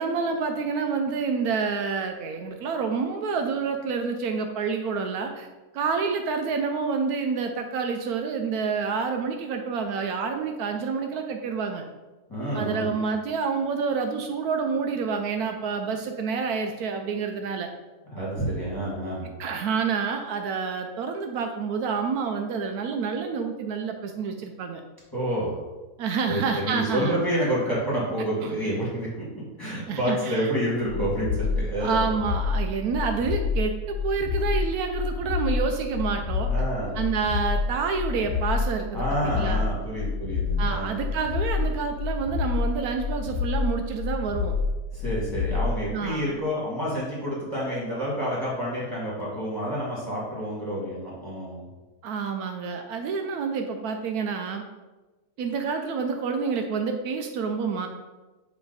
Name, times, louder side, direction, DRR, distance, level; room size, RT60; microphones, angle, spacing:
voice 1, 0.0-5.5 5.7-11.8 12.5-17.7 19.4-24.8 26.0-27.2 28.4-28.5 29.9-30.5 31.8-36.5 36.9-39.8 40.6-44.6 45.9-46.4 52.0-54.6 55.4-57.9, right 5 dB, 75° right, 5 dB, 1.0 m, -28 dB
voice 2, 12.3-12.9 18.1-19.3 25.1-25.6 26.2-32.0 36.5-36.9 38.9-41.0 44.9-51.6, equal, 15° left, -8 dB, 2.0 m, -29 dB
sound 1, 30.8-45.8, left 5 dB, 70° left, 1.3 m, -28 dB
7.3 x 3.4 x 4.0 m, 1.2 s
omnidirectional pair, 1.6 m